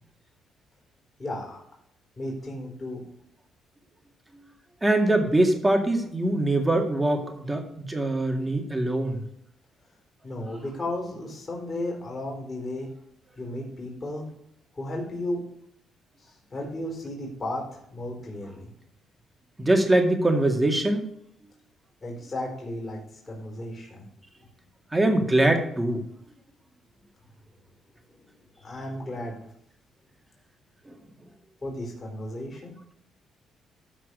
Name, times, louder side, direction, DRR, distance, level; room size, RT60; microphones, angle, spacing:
voice 1, 1.2-1.6 2.2-3.0 10.2-12.9 13.4-14.3 14.7-15.4 16.2-18.7 22.0-24.1 28.6-29.4 31.6-32.8, left 1 dB, 30° left, -2 dB, 4.3 m, -34 dB
voice 2, 4.8-9.2 19.6-21.0 24.9-26.0 30.9-31.0, right 1 dB, 15° right, 3 dB, 2.1 m, -23 dB
13.0 x 4.5 x 6.4 m, 0.73 s
cardioid pair, 90°, 0 cm